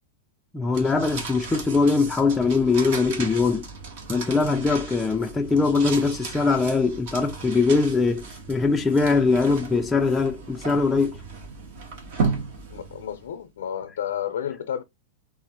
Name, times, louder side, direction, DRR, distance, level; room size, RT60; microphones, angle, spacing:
voice 1, 0.5-3.7 4.1-11.2, left 4 dB, 10° left, 0.3 m, -22 dB
sound 1, 0.7-13.3, right 4 dB, 60° right, 1.7 m, -35 dB
voice 2, 12.7-14.8, left 9 dB, 85° left, 0.5 m, -31 dB
3.9 x 2.5 x 2.8 m
supercardioid pair, 145°, 0 cm